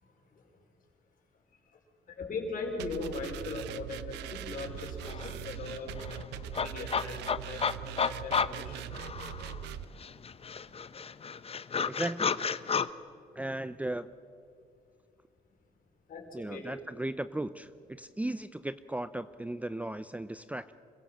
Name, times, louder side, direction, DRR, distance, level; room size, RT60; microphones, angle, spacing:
voice 1, 2.2-5.9 6.5-7.6 8.0-8.8 16.1-16.7, left 3 dB, 55° left, 1 dB, 5.1 m, -39 dB
sound 1, 2.8-9.8, right 11 dB, 80° right, 0.8 m, -41 dB
sound 2, 4.7-4.8 5.0-9.7 10.0-12.9, left 6 dB, 35° left, 0.8 m, -33 dB
voice 2, 11.9-12.4 13.3-14.1 16.3-20.7, right 1 dB, 10° right, 13 dB, 0.6 m, -36 dB
26.5 x 16.0 x 7.8 m, 2.4 s
supercardioid pair, 70°, 17 cm